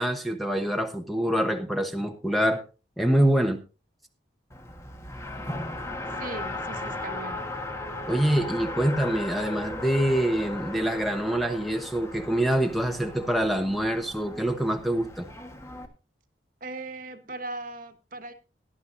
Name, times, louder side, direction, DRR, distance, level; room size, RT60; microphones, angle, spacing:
voice 1, 0.0-2.6 3.0-3.6 8.1-15.3, right 1 dB, ahead, 5 dB, 1.0 m, -25 dB
Race car auto racing, 4.5-15.9, left 2 dB, 15° left, 1.4 m, -37 dB
voice 2, 6.2-7.5 16.6-18.3, right 2 dB, 50° right, 8 dB, 1.4 m, -38 dB
18.0 x 11.5 x 2.6 m, 0.32 s
head